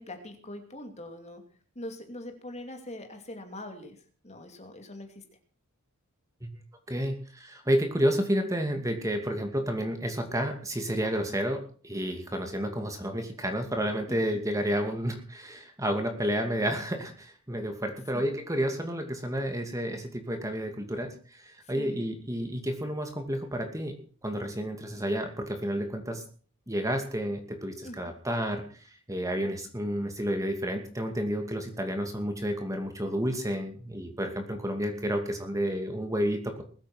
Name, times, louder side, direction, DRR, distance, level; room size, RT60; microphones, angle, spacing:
voice 1, 0.0-1.4 1.7-4.0 4.2-5.2 14.1-14.2 17.5-17.8 18.1-18.2 21.6-22.0 27.8-28.1, left 1 dB, 30° left, 5 dB, 2.7 m, -42 dB
voice 2, 6.9-24.0 24.2-26.2 26.7-36.6, equal, 15° right, 5 dB, 2.5 m, -30 dB
21.0 x 8.9 x 6.2 m, 0.43 s
head